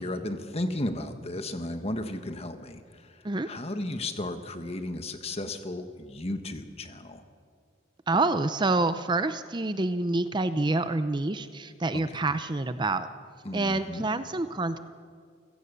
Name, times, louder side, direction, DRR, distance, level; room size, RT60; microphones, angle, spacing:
voice 1, 0.0-7.2 11.9-12.4 13.4-14.1, left 1 dB, 35° left, 7 dB, 1.5 m, -34 dB
voice 2, 8.1-13.1 13.5-14.8, right 2 dB, 25° right, 11 dB, 0.6 m, -27 dB
28.5 x 17.0 x 6.9 m, 2.1 s
head